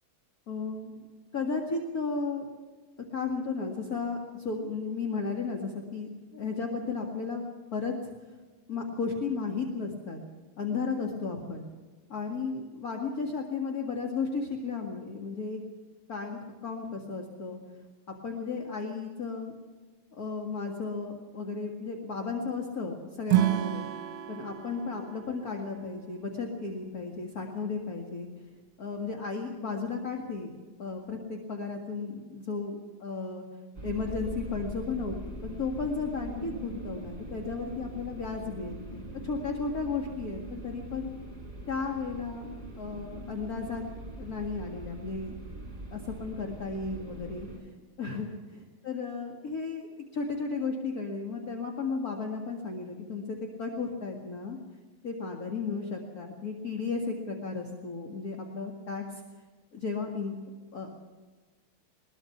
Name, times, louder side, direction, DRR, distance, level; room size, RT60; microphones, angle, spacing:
voice 1, 0.5-0.9 1.3-2.4 3.1-7.4 7.7-8.3 8.7-10.2 10.6-11.6 12.1-15.6 16.1-17.6 18.1-19.5 20.1-23.8 24.3-28.3 28.8-30.5 30.8-32.8 33.0-33.4 33.8-38.8 39.2-41.1 41.7-42.5 42.8-43.8 44.2-45.4 45.9-47.7 48.0-49.9 50.1-54.6 55.0-59.2 59.7-60.4 60.7-60.9, left 4 dB, 45° left, 1 dB, 2.4 m, -34 dB
Acoustic guitar / Strum, 23.3-26.6, right 13 dB, 70° right, 1.6 m, -30 dB
sound 1, 33.7-47.6, right 1 dB, 20° right, 4.4 m, -42 dB
21.5 x 21.0 x 5.9 m, 1.4 s
omnidirectional pair, 2.3 m